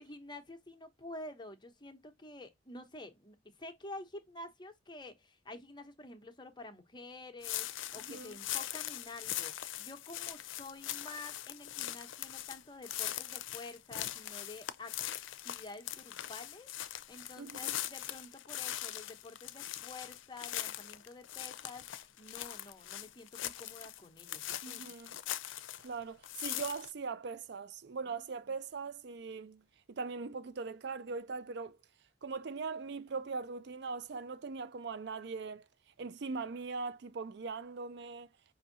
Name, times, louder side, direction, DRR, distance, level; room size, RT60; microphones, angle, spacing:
voice 1, 0.0-15.0 15.4-24.9 28.1-28.2, left 2 dB, 25° left, 0.9 m, -49 dB
sound 1, 7.4-25.9 26.2-26.9, left 13 dB, 80° left, 0.5 m, -41 dB
voice 2, 17.4-17.7 24.6-25.1 25.8-31.8 32.2-35.7 36.0-38.3, right 4 dB, 60° right, 0.4 m, -41 dB
5.4 x 2.6 x 2.6 m
head